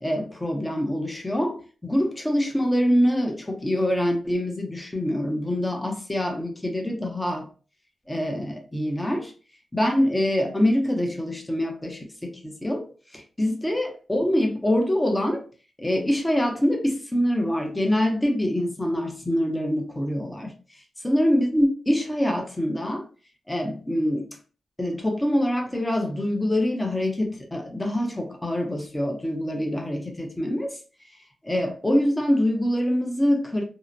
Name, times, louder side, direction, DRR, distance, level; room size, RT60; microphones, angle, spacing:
voice 1, 0.0-7.5 8.1-9.3 9.7-12.9 13.1-15.5 15.8-20.5 21.0-23.1 23.5-24.4 24.8-30.8 31.4-33.6, left 1 dB, 15° left, 0.7 m, -25 dB
2.7 x 2.1 x 2.4 m
cardioid pair, 75°, 0 cm